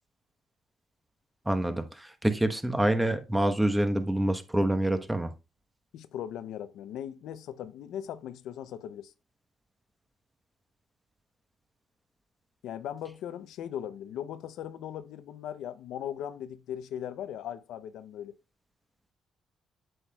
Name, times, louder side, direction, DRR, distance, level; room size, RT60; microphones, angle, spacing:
voice 1, 1.5-5.3, right 1 dB, 10° right, 1.1 m, -26 dB
voice 2, 5.9-9.1 12.6-18.4, left 10 dB, 85° left, 0.6 m, -39 dB
8.0 x 7.7 x 2.3 m
cardioid pair, 90°, 0 cm